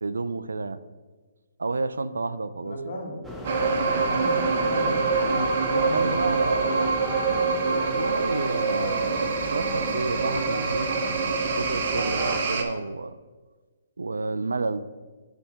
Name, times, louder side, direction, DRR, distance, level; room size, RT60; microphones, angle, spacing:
voice 1, 0.0-0.8 1.6-2.8 5.9-6.8 7.4-10.9 11.5-13.2 14.0-14.8, right 3 dB, 85° right, 14 dB, 0.4 m, -30 dB
voice 2, 2.6-3.3 3.8-6.8, left 1 dB, 50° left, 0 dB, 1.6 m, -36 dB
sound 1, 3.2-12.4, equal, 5° left, 0.7 m, -36 dB
sound 2, 3.4-12.6, right 4 dB, 50° right, 0.9 m, -25 dB
6.9 x 3.4 x 5.7 m, 1.3 s
hypercardioid pair, 140°, 0 cm